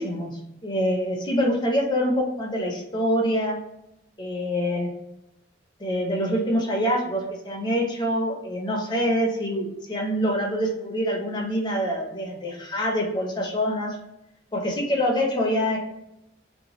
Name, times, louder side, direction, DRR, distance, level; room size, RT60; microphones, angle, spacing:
voice 1, 0.0-3.6 4.2-4.9 5.8-14.0 14.5-15.8, equal, 25° left, -1 dB, 0.7 m, -25 dB
2.7 x 2.2 x 3.0 m, 0.86 s
head